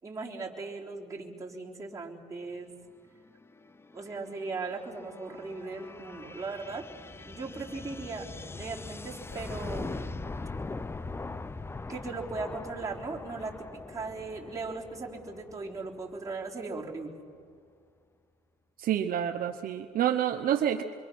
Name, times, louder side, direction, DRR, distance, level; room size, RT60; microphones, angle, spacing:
voice 1, 0.0-2.8 3.9-6.9 7.2-8.3 8.5-10.3 11.9-17.3, right 3 dB, 20° right, -3 dB, 3.7 m, -38 dB
sound 1, 3.3-16.7, left 3 dB, 15° left, 0.6 m, -42 dB
voice 2, 18.8-20.8, right 10 dB, 55° right, 5 dB, 1.0 m, -28 dB
26.5 x 23.0 x 6.3 m, 2.1 s
cardioid pair, 110°, 17 cm